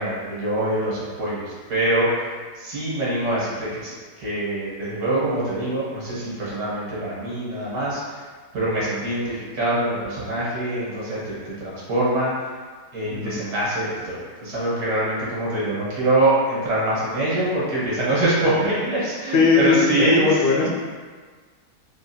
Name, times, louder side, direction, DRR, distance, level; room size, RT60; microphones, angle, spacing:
voice 1, 0.0-2.1 2.6-8.0 8.5-12.3 12.9-20.7, right 1 dB, 65° right, -8 dB, 1.6 m, -24 dB
voice 2, 19.3-20.7, left 4 dB, 75° left, -3 dB, 1.2 m, -19 dB
3.7 x 2.4 x 2.6 m, 1.5 s
omnidirectional pair, 1.9 m